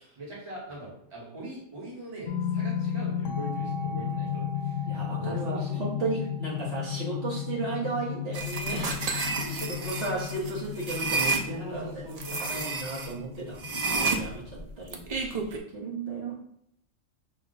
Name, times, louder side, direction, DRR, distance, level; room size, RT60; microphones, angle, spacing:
voice 1, 0.2-4.8 5.2-5.8 9.4-10.2 11.5-12.6, right 2 dB, 25° right, -5 dB, 1.2 m, -42 dB
sound 1, 2.3-14.9, left 8 dB, 75° left, 0.9 m, -34 dB
voice 2, 4.8-9.6 9.8-16.3, right 3 dB, 50° right, -6 dB, 1.3 m, -35 dB
sound 2, 8.3-11.5 12.2-13.1 13.6-15.6, right 3 dB, 70° right, 0.3 m, -30 dB
5.4 x 2.3 x 3.8 m, 0.74 s
omnidirectional pair, 1.3 m